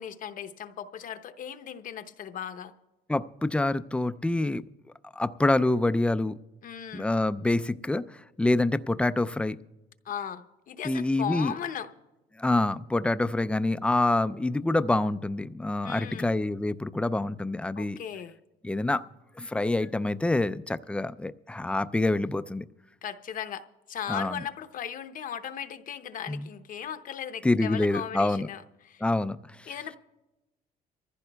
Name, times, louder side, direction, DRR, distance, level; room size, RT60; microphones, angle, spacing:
voice 1, 0.0-2.7 6.6-7.1 10.0-11.9 15.8-16.3 17.8-18.4 23.0-29.0 29.7-30.0, left 9 dB, 55° left, 10 dB, 0.8 m, -37 dB
voice 2, 3.1-4.6 5.2-6.4 6.9-9.6 10.8-11.5 12.4-18.0 18.6-19.0 19.4-22.7 24.1-24.4 26.3-26.5 27.4-28.5 29.0-29.4, left 2 dB, 5° left, 13 dB, 0.3 m, -26 dB
25.0 x 15.0 x 2.3 m, 1.0 s
cardioid pair, 110°, 17 cm